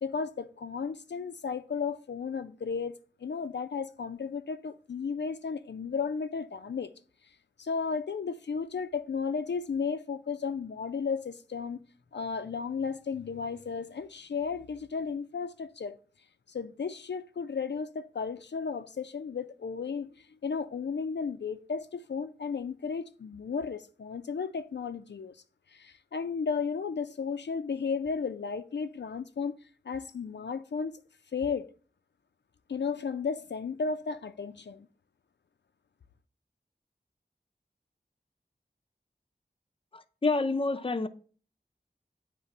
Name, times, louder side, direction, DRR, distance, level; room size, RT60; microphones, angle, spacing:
voice 1, 0.0-2.9 3.2-6.9 7.6-11.8 12.1-16.0 16.5-25.4 25.7-29.6 29.9-30.9 31.3-31.7 32.7-34.9, left 5 dB, 85° left, 0.4 m, -34 dB
voice 2, 39.9-41.1, left 3 dB, 30° left, 0.5 m, -28 dB
8.3 x 2.9 x 5.3 m
wide cardioid pair, 50°, 18 cm